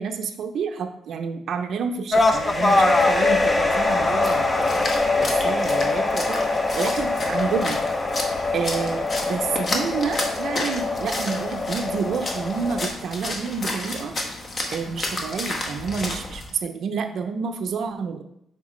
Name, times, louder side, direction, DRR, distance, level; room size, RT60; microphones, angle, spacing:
voice 1, 0.0-4.9 5.2-6.4 6.7-7.8 8.5-14.1 14.7-18.2, right 5 dB, 65° right, 7 dB, 0.5 m, -29 dB
sound 1, 2.1-12.9, left 3 dB, 20° left, 0.6 m, -23 dB
Splash splatter, 3.8-16.5, left 2 dB, 40° left, 1.0 m, -32 dB
7.2 x 4.4 x 3.2 m, 0.73 s
cardioid pair, 120°, 0 cm